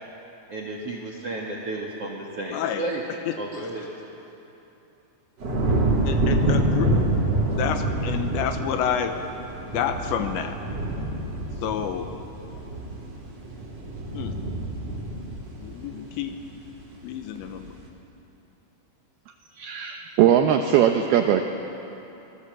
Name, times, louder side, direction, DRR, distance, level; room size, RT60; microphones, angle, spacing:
voice 1, 0.5-3.0 3.4-3.9, right 2 dB, 55° right, -1 dB, 1.6 m, -32 dB
voice 2, 2.5-3.4 6.0-6.9 7.6-9.2 9.7-10.6 11.6-12.1 14.1-14.3 15.6-16.4 17.0-17.7, left 8 dB, 75° left, 7 dB, 3.1 m, -29 dB
sound 1, 5.4-16.7 17.1-17.6, right 1 dB, 35° right, 4.0 m, -27 dB
voice 3, 19.6-21.4, right 10 dB, 80° right, 5 dB, 2.3 m, -20 dB
26.0 x 19.0 x 7.5 m, 2.9 s
omnidirectional pair, 5.6 m